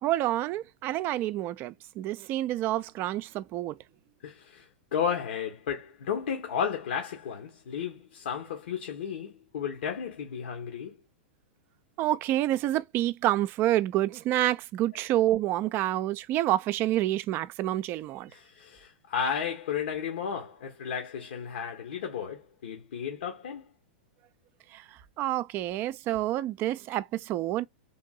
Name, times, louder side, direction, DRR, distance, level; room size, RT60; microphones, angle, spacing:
voice 1, 0.0-3.8 12.0-18.3 24.7-24.8 25.2-27.7, right 14 dB, 40° right, 0.4 m, -28 dB
voice 2, 4.2-11.0 18.3-23.7, left 7 dB, 75° left, 1.2 m, -33 dB
3.5 x 2.6 x 2.4 m
hypercardioid pair, 115°, 6 cm